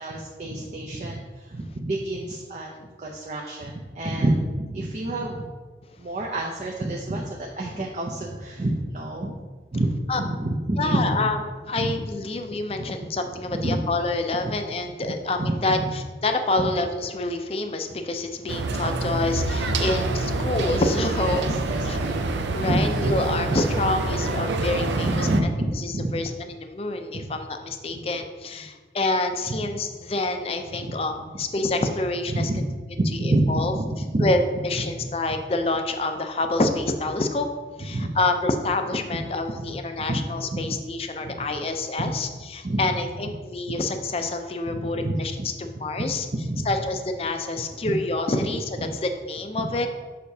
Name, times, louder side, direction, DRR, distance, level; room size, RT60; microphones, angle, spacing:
voice 1, 0.0-2.7 3.0-5.5 6.0-9.4 9.7-11.2 11.8-11.9 12.8-12.9 13.5-13.8 14.4-14.5 15.4-15.9 16.6-16.7 18.5-18.7 21.1-22.2 22.6-23.2 24.7-26.2 27.1-27.2 30.9-31.0 32.3-32.6 33.0-34.3 35.0-35.1 37.9-38.2 39.6-39.7 40.1-40.3 40.5-40.8 41.2-41.5 42.0-42.1 42.6-42.8 44.7-45.5 46.3-46.7 49.6-49.9, right 1 dB, 40° right, -1 dB, 0.5 m, -28 dB
voice 2, 10.8-11.4 11.7-21.6 21.9-22.0 22.5-25.3 25.8-32.5 33.1-33.7 34.2-37.5 37.8-45.3 45.6-46.3 46.7-48.7 49.0-49.9, left 2 dB, 35° left, 6 dB, 0.5 m, -27 dB
sound 1, 18.5-25.4, right 2 dB, 85° right, 0.5 m, -26 dB
6.5 x 5.7 x 2.7 m, 1.4 s
head